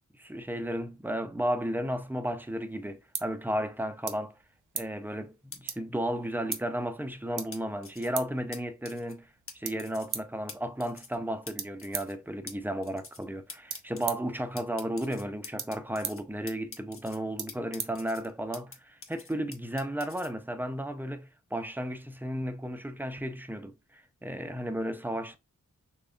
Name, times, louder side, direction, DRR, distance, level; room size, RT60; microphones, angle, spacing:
voice 1, 0.2-4.3 4.7-9.3 9.5-25.4, equal, 5° right, 0.5 m, -34 dB
sound 1, 2.4-18.7, right 7 dB, 90° right, 0.6 m, -43 dB
sound 2, 5.5-5.6 6.5-6.6 7.5-8.1 8.5-8.6 8.8-9.1 9.5-9.6 9.8-10.1 10.5-10.6 10.8-11.2 11.5-11.6 11.8-12.1 12.5-12.6 12.8-13.2 13.5-14.1 14.6-16.2 16.5-17.2 17.5-18.8 19.0-20.3, left 4 dB, 45° left, 0.7 m, -45 dB
3.6 x 3.0 x 2.3 m
wide cardioid pair, 65°, 30 cm